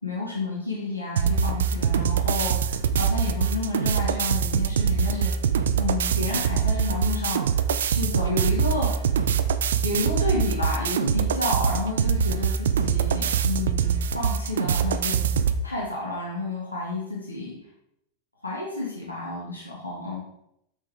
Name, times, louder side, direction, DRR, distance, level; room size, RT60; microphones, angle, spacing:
voice 1, 0.0-5.3 5.8-7.6 7.9-8.9 9.8-15.3 15.6-17.5 18.4-20.2, left 2 dB, 80° left, -4 dB, 1.8 m, -30 dB
sound 1, 1.2-15.6, right 7 dB, 65° right, 0.4 m, -24 dB
8.3 x 6.1 x 3.4 m, 0.77 s
figure-of-eight pair, 90°, 0 cm